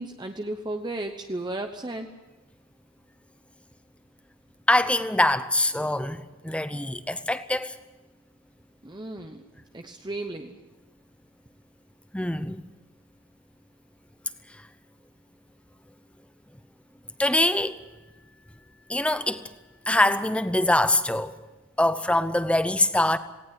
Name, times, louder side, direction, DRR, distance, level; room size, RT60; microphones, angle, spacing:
voice 1, 0.0-2.1 8.8-9.4 9.7-10.6, right 2 dB, 20° right, 1.0 m, -34 dB
voice 2, 4.7-7.8 12.1-12.6 14.5-14.6 17.2-17.8 18.9-19.5 19.9-21.4 21.8-23.2, left 1 dB, 5° left, 0.8 m, -24 dB
18.5 x 18.0 x 9.5 m
head